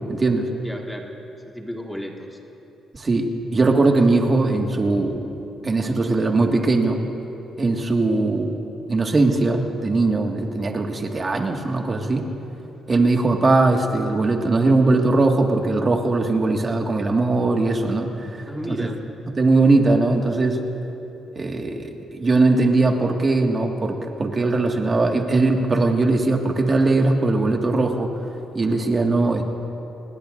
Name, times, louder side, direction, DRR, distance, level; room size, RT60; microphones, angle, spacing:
voice 1, 0.1-0.5 2.9-5.3 5.6-7.0 7.6-8.6 8.9-12.3 12.9-18.9 19.4-20.6 21.4-28.1 28.5-29.4, right 3 dB, 30° right, 2 dB, 1.9 m, -20 dB
voice 2, 0.6-1.1 1.5-2.4 18.5-19.0, equal, 5° left, 0 dB, 1.8 m, -33 dB
27.5 x 20.0 x 2.6 m, 3.0 s
cardioid pair, 90°, 0 cm